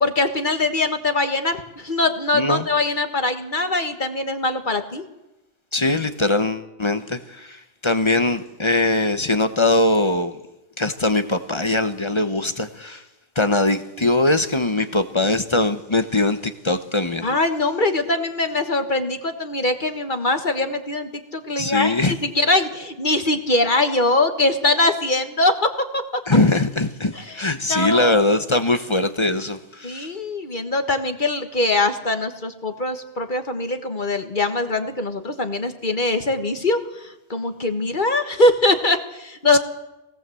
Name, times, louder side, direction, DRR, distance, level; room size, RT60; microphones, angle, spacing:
voice 1, 0.0-5.0 17.2-26.0 27.1-28.2 29.8-39.6, left 2 dB, 45° left, 7 dB, 1.6 m, -22 dB
voice 2, 2.3-2.7 5.7-10.3 10.8-13.0 13.4-17.3 21.6-22.1 26.3-30.1 39.5-39.6, left 2 dB, 25° left, 9 dB, 1.1 m, -21 dB
22.5 x 17.5 x 7.8 m, 0.97 s
omnidirectional pair, 1.2 m